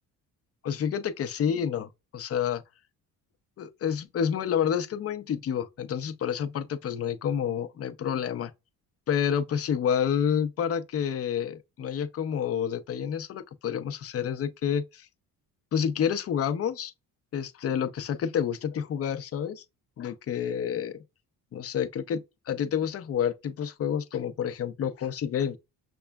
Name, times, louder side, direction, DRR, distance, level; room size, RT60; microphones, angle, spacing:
voice 1, 0.6-2.6 3.6-8.5 9.1-15.1 15.7-16.9 17.3-19.6 20.0-21.0 21.5-25.6, left 8 dB, 40° left, 0.5 m, -29 dB
5.8 x 2.2 x 2.2 m
cardioid pair, 120°, 37 cm